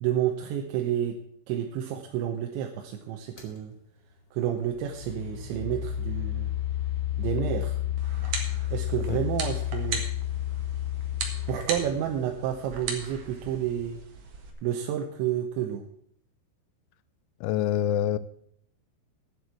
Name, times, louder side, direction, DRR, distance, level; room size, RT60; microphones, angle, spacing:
voice 1, 0.0-1.2 1.5-3.8 4.3-6.5 7.2-7.8 8.7-10.0 11.5-14.0 14.6-15.8, right 10 dB, 80° right, 3 dB, 3.0 m, -30 dB
sound 1, 3.4-3.6 4.5-12.5, left 12 dB, 40° left, 1.5 m, -31 dB
sound 2, 8.0-14.5, right 5 dB, 60° right, 1.9 m, -38 dB
voice 2, 17.4-18.2, left 10 dB, 85° left, 15 dB, 3.0 m, -26 dB
9.5 x 7.7 x 8.3 m, 0.65 s
omnidirectional pair, 5.4 m